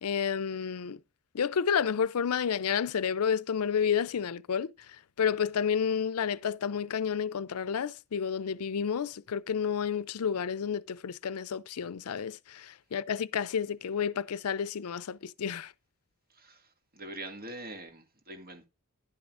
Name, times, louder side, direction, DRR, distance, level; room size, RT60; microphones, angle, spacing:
voice 1, 0.0-1.0 1.3-15.7, left 7 dB, 85° left, 0.5 m, -30 dB
voice 2, 16.4-16.7 16.9-18.7, right 1 dB, 45° right, 2.2 m, -43 dB
11.0 x 10.5 x 2.5 m
head